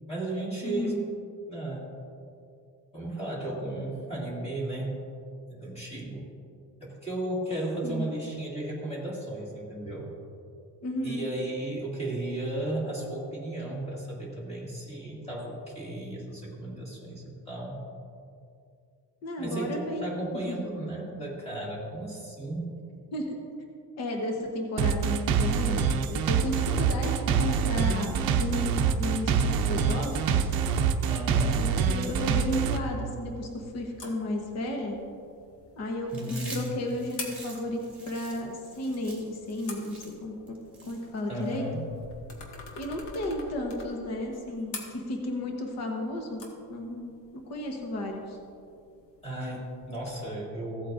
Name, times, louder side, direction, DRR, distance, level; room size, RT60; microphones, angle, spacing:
voice 1, 0.1-1.0 1.5-1.9 2.9-5.0 5.5-6.3 6.8-10.1 11.0-17.8 19.4-22.7 31.1-31.7 36.1-36.6 41.3-41.8 49.2-50.9, right 1 dB, 15° left, -6 dB, 2.2 m, -34 dB
voice 2, 0.6-1.0 7.8-8.1 10.8-11.3 19.2-20.0 20.4-20.6 23.1-23.3 24.0-30.4 31.5-35.0 35.8-37.8 38.0-40.6 40.9-41.6 42.8-46.4 46.7-48.4, left 1 dB, 40° left, 1 dB, 1.1 m, -33 dB
sound 1, 24.8-32.8, right 6 dB, 60° right, 0.7 m, -25 dB
sound 2, 32.3-50.1, left 3 dB, 75° left, 1.8 m, -48 dB
Chewing mastication, 36.1-41.6, right 2 dB, 5° right, 2.0 m, -46 dB
16.0 x 8.4 x 2.6 m, 2.5 s
cardioid pair, 170°, 40 cm